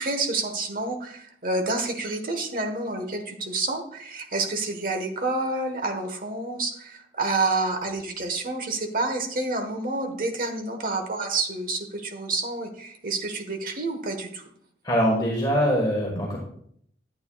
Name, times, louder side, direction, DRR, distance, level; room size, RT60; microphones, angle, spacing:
voice 1, 0.0-14.4, right 3 dB, 50° right, 5 dB, 1.2 m, -28 dB
voice 2, 14.8-16.4, equal, 25° left, -2 dB, 1.4 m, -23 dB
11.5 x 8.6 x 2.3 m, 0.66 s
head